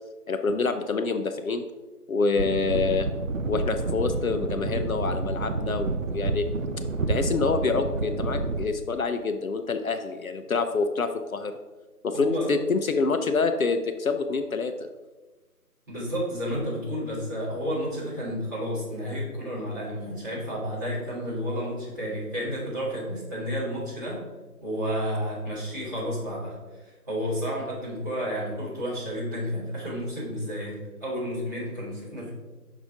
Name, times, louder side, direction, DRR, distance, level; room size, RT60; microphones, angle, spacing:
voice 1, 0.3-1.6 2.1-3.1 3.5-6.4 7.1-11.5 12.0-14.7, left 4 dB, 65° left, 7 dB, 0.6 m, -26 dB
sound 1, 2.4-8.7, right 3 dB, 60° right, 0.6 m, -29 dB
voice 2, 12.1-12.5 15.9-24.2 24.6-32.3, equal, 10° right, -10 dB, 1.4 m, -31 dB
6.4 x 5.0 x 3.7 m, 1.2 s
figure-of-eight pair, 160°, 46 cm